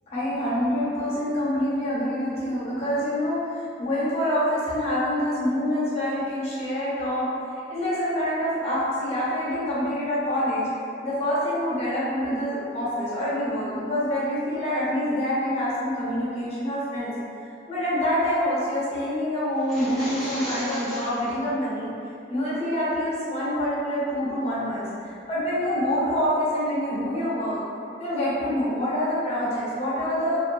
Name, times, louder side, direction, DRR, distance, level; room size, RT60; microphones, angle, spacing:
voice 1, 0.1-7.3 7.7-10.7 11.0-17.1 17.7-21.9 22.3-27.6 28.0-30.4, equal, 35° left, -9 dB, 0.9 m, -26 dB
sound 1, 19.6-21.3, equal, ahead, 0.6 m, -35 dB
2.6 x 2.4 x 2.4 m, 2.4 s
head